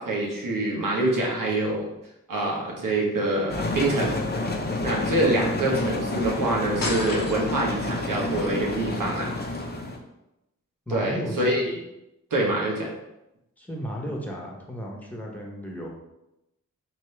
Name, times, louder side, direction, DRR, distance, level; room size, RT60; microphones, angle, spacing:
voice 1, 0.0-1.9 2.3-4.1 4.8-9.3 10.9-11.6 12.3-12.9, right 2 dB, 80° right, -2 dB, 1.2 m, -25 dB
sound 1, 3.5-10.0, left 2 dB, 30° left, 0.7 m, -29 dB
sound 2, 6.8-7.7, left 2 dB, 85° left, 0.9 m, -31 dB
voice 2, 10.9-11.5 13.6-15.9, equal, 5° left, -2 dB, 1.2 m, -34 dB
4.5 x 2.9 x 3.3 m, 0.89 s
cardioid pair, 60°, 32 cm